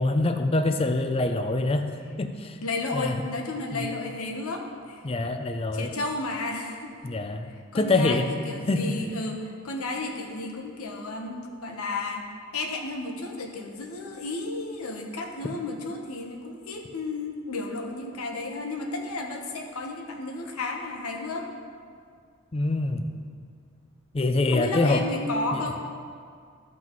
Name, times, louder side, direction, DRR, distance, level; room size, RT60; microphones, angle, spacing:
voice 1, 0.0-1.9 2.2-2.6 2.9-3.1 3.7-3.9 5.0-5.9 7.0-8.3 8.7-9.0 22.5-23.0 24.1-25.0 25.5-25.6, left 2 dB, 25° left, 7 dB, 0.4 m, -25 dB
voice 2, 2.6-5.0 5.7-6.9 7.7-21.5 24.5-25.9, left 2 dB, 80° left, 2 dB, 1.0 m, -33 dB
14.0 x 6.0 x 3.0 m, 2.1 s
head